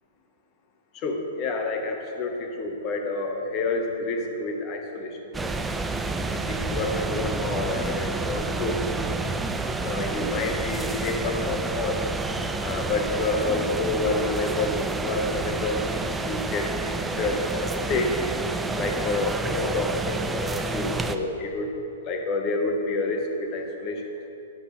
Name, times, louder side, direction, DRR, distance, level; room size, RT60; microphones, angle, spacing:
voice 1, 0.9-5.5 6.5-8.8 9.8-12.1 12.6-16.0 16.2-18.1 18.7-21.7 22.0-24.0, left 3 dB, 35° left, 3 dB, 1.5 m, -29 dB
sound 1, 5.3-21.2, right 3 dB, 10° right, 0.5 m, -29 dB
12.0 x 10.5 x 3.4 m, 2.8 s
figure-of-eight pair, 110°, 0 cm